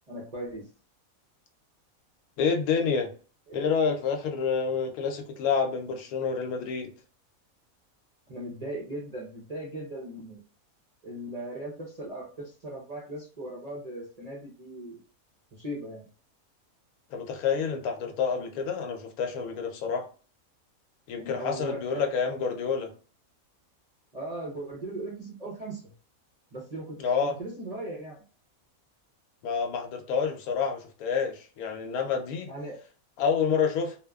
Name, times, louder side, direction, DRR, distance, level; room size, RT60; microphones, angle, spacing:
voice 1, 0.1-0.7 3.5-3.6 8.3-10.4 11.0-15.0 15.5-16.1 21.2-22.1 24.1-25.9 26.5-28.2 32.5-32.8, right 1 dB, 40° right, 0.5 m, -38 dB
voice 2, 2.4-3.1 3.5-6.9 17.1-20.1 21.1-22.9 27.0-27.4 29.4-32.5 33.2-34.0, left 6 dB, 85° left, 1.1 m, -28 dB
2.9 x 2.1 x 2.2 m
omnidirectional pair, 1.5 m